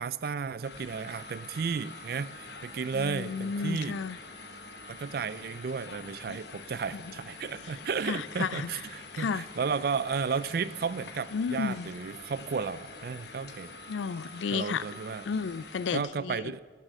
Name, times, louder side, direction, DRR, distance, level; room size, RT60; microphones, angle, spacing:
voice 1, 0.0-4.0 4.9-13.7 14.5-15.2 15.9-16.6, right 5 dB, 55° right, 17 dB, 0.4 m, -33 dB
sound 1, 0.6-16.0, left 3 dB, 65° left, 1.0 m, -46 dB
voice 2, 2.9-4.2 6.2-6.4 6.9-7.1 7.6-8.9 9.1-9.5 11.3-11.9 13.9-14.8 15.3-16.5, left 5 dB, 90° left, 18 dB, 0.4 m, -33 dB
12.0 x 7.5 x 6.1 m, 1.4 s
head